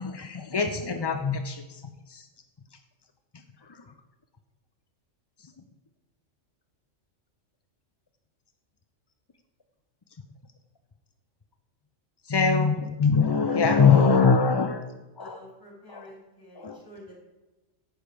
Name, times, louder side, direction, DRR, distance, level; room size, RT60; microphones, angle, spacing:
voice 1, 0.0-1.8 2.1-2.3 3.6-3.9 12.3-14.8 15.2-15.4 15.9-16.0 16.6-16.8, left 5 dB, 40° left, 6 dB, 0.3 m, -23 dB
voice 2, 13.4-14.2 15.2-17.2, equal, 15° left, -1 dB, 3.1 m, -46 dB
11.5 x 7.9 x 5.1 m, 1.1 s
omnidirectional pair, 1.3 m